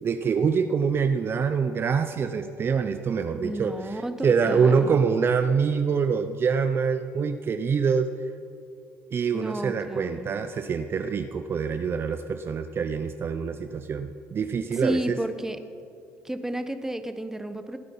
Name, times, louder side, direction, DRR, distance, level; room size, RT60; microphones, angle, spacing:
voice 1, 0.0-8.1 9.1-15.2, right 6 dB, 40° right, 9 dB, 0.6 m, -25 dB
voice 2, 3.3-4.8 9.3-10.4 14.7-15.6 16.2-17.8, right 1 dB, 5° right, 9 dB, 1.1 m, -32 dB
19.0 x 9.7 x 5.6 m, 2.4 s
supercardioid pair, 80°, 6 cm